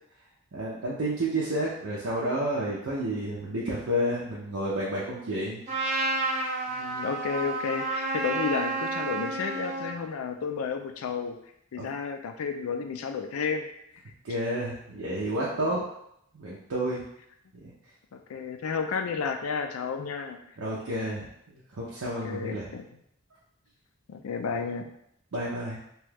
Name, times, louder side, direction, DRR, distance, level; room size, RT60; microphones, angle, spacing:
voice 1, 0.5-5.6 11.8-11.9 14.2-15.8 16.3-17.0 17.6-17.7 20.6-21.3 21.7-22.7 25.3-25.8, right 1 dB, 70° right, -6 dB, 0.6 m, -30 dB
Trumpet, 5.7-10.0, right 3 dB, 30° right, 0.7 m, -30 dB
voice 2, 6.7-11.4 11.7-13.7 15.5-15.8 18.1-20.4 22.0-22.9 24.1-24.9, left 6 dB, 75° left, 5 dB, 0.4 m, -32 dB
3.0 x 2.3 x 3.3 m, 0.74 s
head